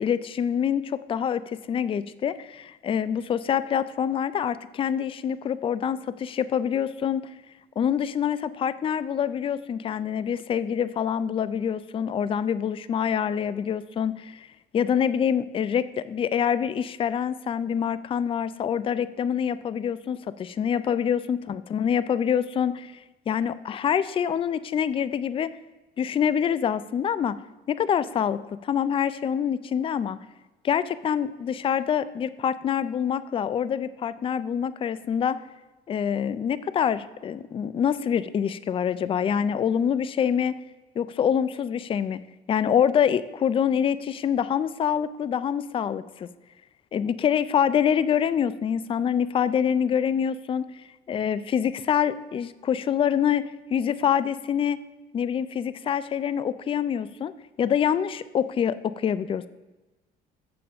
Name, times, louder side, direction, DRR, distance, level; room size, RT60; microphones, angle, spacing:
voice 1, 0.0-7.3 7.8-14.5 14.7-23.0 23.3-25.5 26.0-27.4 27.7-30.2 30.6-35.4 35.9-40.6 41.0-42.2 42.5-46.3 46.9-50.7 51.1-54.8 55.1-57.3 57.6-59.5, left 8 dB, 30° left, 16 dB, 0.4 m, -26 dB
7.2 x 6.9 x 6.4 m, 1.1 s
cardioid pair, 110°, 17 cm